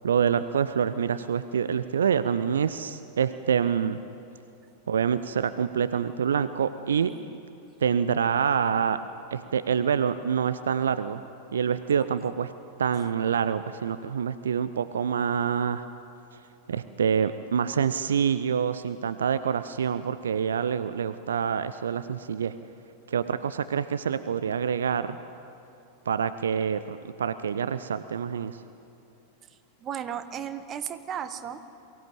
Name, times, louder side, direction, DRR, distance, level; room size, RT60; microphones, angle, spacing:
voice 1, 0.0-4.0 4.9-7.1 7.8-9.0 9.3-11.2 11.5-12.5 12.8-15.9 16.7-22.5 23.1-25.2 26.1-28.6, right 7 dB, 65° right, 13 dB, 0.6 m, -26 dB
voice 2, 7.1-7.4 29.8-31.6, right 9 dB, 30° right, 11 dB, 1.2 m, -35 dB
23.0 x 16.0 x 8.8 m, 2.7 s
figure-of-eight pair, 90°, 0 cm